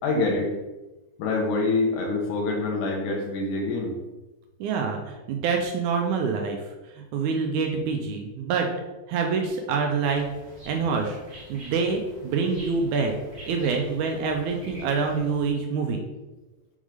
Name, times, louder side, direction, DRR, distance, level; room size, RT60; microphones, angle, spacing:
voice 1, 0.0-0.5 1.2-3.9, left 3 dB, 65° left, 0 dB, 2.2 m, -25 dB
voice 2, 4.6-8.7 9.1-10.3 10.7-11.2 11.5-13.1 13.5-16.0, right 5 dB, 90° right, 2 dB, 1.7 m, -26 dB
sound 1, 10.0-15.5, right 1 dB, 70° right, 0.6 m, -47 dB
6.3 x 3.6 x 4.9 m, 1.1 s
omnidirectional pair, 4.1 m